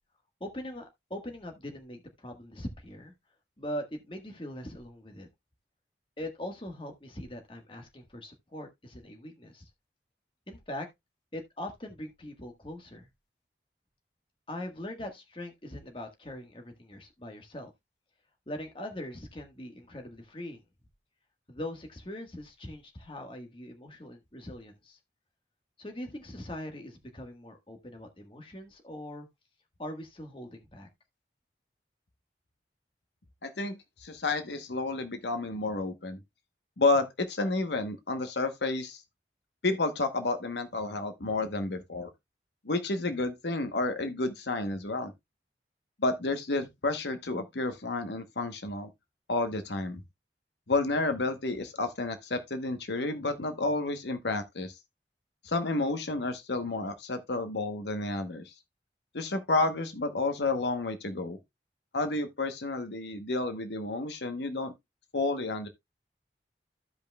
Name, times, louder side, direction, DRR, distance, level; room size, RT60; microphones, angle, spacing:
voice 1, 0.4-3.1 3.6-5.3 6.2-9.7 10.5-10.9 11.3-13.1 14.5-17.7 18.5-20.6 21.5-25.0 25.8-29.3 29.8-30.9, left 1 dB, 30° left, 1.4 m, -41 dB
voice 2, 33.4-36.2 36.8-39.0 39.6-42.1 42.6-45.1 46.0-48.9 49.3-50.0 50.7-54.7 55.4-58.5 59.1-61.4 61.9-64.7 65.1-65.7, left 2 dB, 80° left, 1.0 m, -30 dB
14.5 x 5.3 x 2.2 m
head